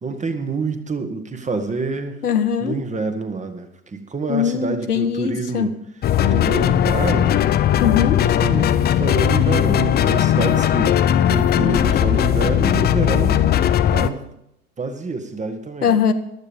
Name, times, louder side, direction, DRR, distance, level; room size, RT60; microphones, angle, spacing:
voice 1, 0.0-2.2 2.6-5.7 6.2-7.3 8.2-10.9 11.3-13.4 13.9-14.2 14.8-16.0, right 4 dB, 15° right, 7 dB, 1.6 m, -27 dB
voice 2, 2.2-2.7 4.3-5.7 7.8-8.2 15.8-16.1, left 8 dB, 85° left, 8 dB, 1.3 m, -20 dB
sound 1, 6.0-14.1, left 10 dB, 20° left, 0.6 m, -18 dB
15.0 x 11.5 x 5.2 m, 0.79 s
figure-of-eight pair, 85°, 45 cm